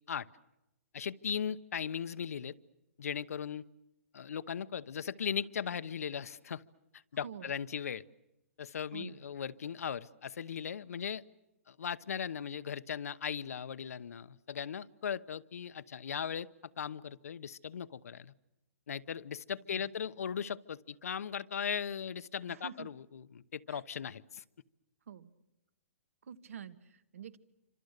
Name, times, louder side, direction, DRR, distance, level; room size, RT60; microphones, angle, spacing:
voice 1, 0.9-2.6 3.0-3.6 4.1-6.6 7.1-8.0 8.6-11.2 11.7-16.5 16.8-18.3 18.9-24.4, left 7 dB, 85° left, 12 dB, 0.9 m, -38 dB
voice 2, 8.9-9.2 19.7-19.9 22.5-22.9 23.7-23.8 25.1-25.3 26.2-27.4, right 8 dB, 70° right, 13 dB, 1.7 m, -47 dB
28.5 x 26.0 x 6.7 m, 0.94 s
hypercardioid pair, 175°, 8 cm